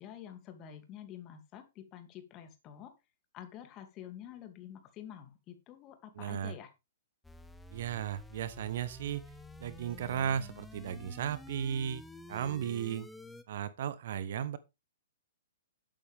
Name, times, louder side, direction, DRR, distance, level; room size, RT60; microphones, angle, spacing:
voice 1, 0.0-2.9 3.3-6.7, left 10 dB, 30° left, 2.6 m, -48 dB
voice 2, 6.2-6.5 7.7-9.3 9.6-12.0 12.3-13.1 13.5-14.6, right 9 dB, 50° right, 1.1 m, -35 dB
sound 1, 7.2-13.4, left 2 dB, 5° left, 1.1 m, -50 dB
12.0 x 8.9 x 3.5 m
figure-of-eight pair, 115°, 0 cm